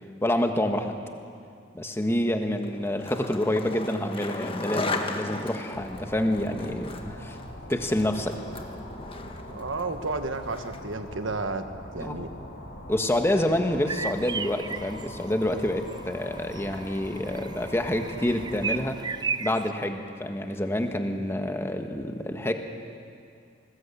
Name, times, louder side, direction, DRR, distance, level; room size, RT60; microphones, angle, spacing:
voice 1, 0.2-0.9 1.7-7.4 7.7-8.4 12.0-12.2 12.9-19.0 19.4-22.5, left 1 dB, 15° left, 5 dB, 1.5 m, -27 dB
Skateboard, 2.6-11.0, left 2 dB, 30° left, 1.5 m, -36 dB
sound 1, 5.7-18.9, left 1 dB, 55° left, 4.0 m, -42 dB
voice 2, 9.5-11.6 11.9-12.3, right 3 dB, 85° right, 8 dB, 1.4 m, -32 dB
sound 2, 13.9-15.1 15.9-16.0 16.4-19.7, right 5 dB, 20° right, 0.5 m, -33 dB
21.0 x 19.5 x 8.5 m, 2.4 s
head